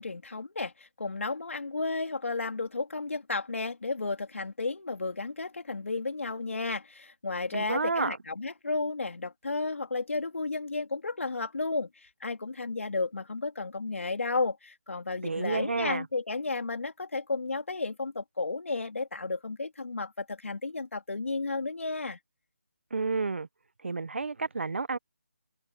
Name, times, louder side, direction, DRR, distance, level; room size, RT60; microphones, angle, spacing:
voice 1, 0.0-22.2, left 3 dB, 70° left, 3.5 m, -33 dB
voice 2, 7.5-8.2 15.2-16.1 22.9-23.5 23.8-25.0, right 4 dB, 60° right, 1.1 m, -30 dB
figure-of-eight pair, 175°, 7 cm